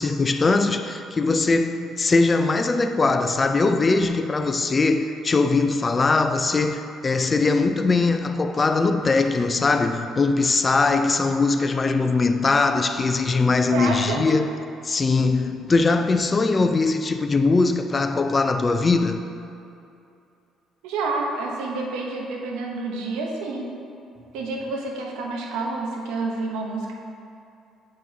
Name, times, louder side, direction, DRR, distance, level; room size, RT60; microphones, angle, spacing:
voice 1, 0.0-14.5 14.8-19.2, left 3 dB, 30° left, 8 dB, 0.4 m, -21 dB
voice 2, 13.7-14.2 20.8-23.7 24.3-26.9, right 3 dB, 85° right, 0 dB, 0.9 m, -28 dB
7.6 x 7.5 x 2.8 m, 2.6 s
cardioid pair, 90°, 0 cm